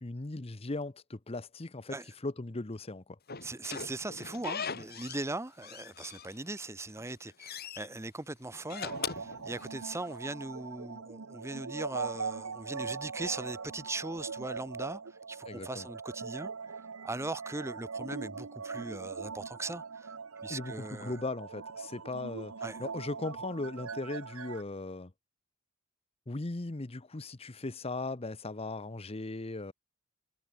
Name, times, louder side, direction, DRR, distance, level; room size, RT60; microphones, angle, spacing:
voice 1, 0.0-3.2 15.4-15.9 20.5-22.5 22.8-25.1 26.3-29.7, left 2 dB, 30° left, 0.8 m, -38 dB
Slam / Squeak, 3.3-5.3 5.6-6.6 7.0-7.9 8.5-10.1, left 6 dB, 50° left, 2.1 m, -40 dB
voice 2, 3.4-15.0 15.3-16.5 17.0-20.1 20.4-21.1 22.6-22.8, right 2 dB, 15° right, 0.8 m, -39 dB
sound 1, 8.9-24.6, right 5 dB, 85° right, 1.0 m, -41 dB
head